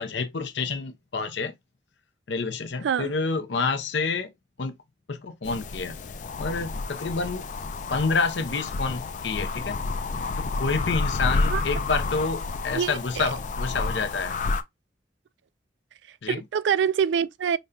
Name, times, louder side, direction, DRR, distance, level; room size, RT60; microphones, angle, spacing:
voice 1, 0.0-1.5 2.3-4.3 4.6-4.7 5.1-6.0 6.4-7.4 7.9-9.8 10.4-14.4 16.2-16.4, left 4 dB, 80° left, 0.7 m, -28 dB
sound 1, 5.4-14.6, left 3 dB, 45° left, 0.4 m, -30 dB
voice 2, 12.7-13.3 16.3-17.6, right 7 dB, 75° right, 0.3 m, -25 dB
5.2 x 2.2 x 2.5 m
head